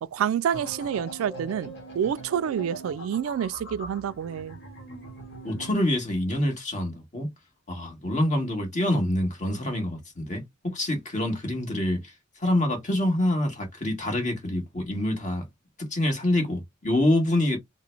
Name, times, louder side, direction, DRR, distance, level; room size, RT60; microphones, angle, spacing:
voice 1, 0.0-4.6, right 8 dB, 85° right, 0.3 m, -28 dB
sound 1, 0.5-5.7, right 1 dB, 55° left, 1.3 m, -41 dB
voice 2, 5.4-7.3 7.7-12.1 12.4-15.5 15.9-17.6, left 1 dB, 40° left, 1.4 m, -26 dB
3.8 x 2.0 x 3.3 m
head